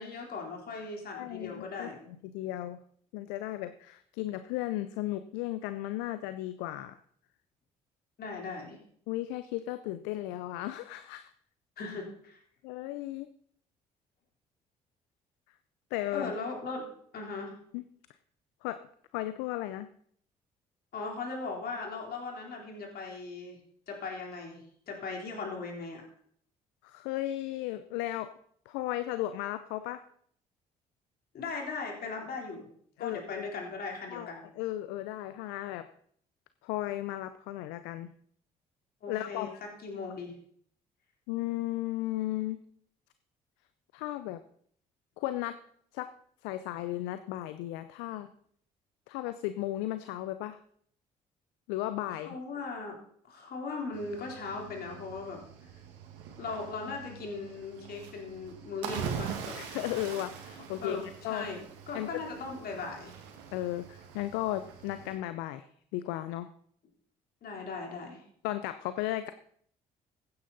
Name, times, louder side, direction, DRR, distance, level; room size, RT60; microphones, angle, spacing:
voice 1, 0.0-2.0 8.2-8.8 11.8-12.4 16.1-16.9 17.1-17.6 20.9-23.6 23.9-26.0 31.3-32.7 33.0-34.4 39.0-40.3 52.1-53.0 53.2-55.4 56.4-59.6 60.8-63.2 67.4-68.2, left 4 dB, 60° left, 1 dB, 3.7 m, -38 dB
voice 2, 1.1-1.9 2.2-2.8 3.1-7.0 9.1-11.3 12.6-13.3 15.9-16.3 17.7-17.8 18.6-18.8 19.1-19.9 26.8-28.3 28.7-30.0 33.0-33.5 34.1-35.9 36.6-38.1 39.1-39.6 41.3-42.6 43.9-44.4 45.2-45.6 45.9-46.1 46.4-48.3 49.1-50.6 51.7-52.4 59.5-61.5 61.9-62.1 63.5-65.7 65.9-66.5 68.4-69.3, left 14 dB, 75° left, 12 dB, 0.6 m, -35 dB
Cricket / Waves surf, 53.9-65.2, right 7 dB, 75° right, 1.9 m, -43 dB
15.5 x 9.7 x 4.1 m, 0.63 s
hypercardioid pair, 50°, 18 cm